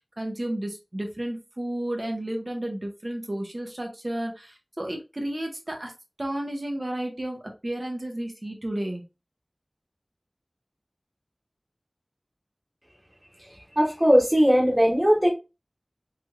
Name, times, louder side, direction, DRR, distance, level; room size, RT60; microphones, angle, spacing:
voice 1, 0.2-5.9 6.2-9.0, right 1 dB, 50° right, 1.0 m, -32 dB
voice 2, 13.4-15.3, equal, 20° right, 1.3 m, -20 dB
3.3 x 3.3 x 2.3 m
wide cardioid pair, 45°, 0 cm